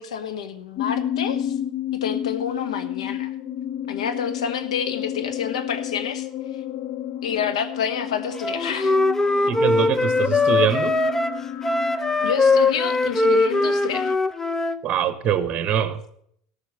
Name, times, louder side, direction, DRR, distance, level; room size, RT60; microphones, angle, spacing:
voice 1, 0.0-1.5 2.0-3.3 3.9-6.3 7.2-9.0 12.2-14.1, left 7 dB, 85° left, 9 dB, 1.1 m, -28 dB
sound 1, 0.8-14.2, left 10 dB, 50° left, 0.7 m, -31 dB
Wind instrument woodwind instrument, 8.4-14.8, left 2 dB, 10° left, 0.6 m, -21 dB
voice 2, 9.5-10.9 14.8-16.0, right 8 dB, 35° right, 12 dB, 1.2 m, -23 dB
13.5 x 5.8 x 7.5 m, 0.69 s
hypercardioid pair, 90°, 3 cm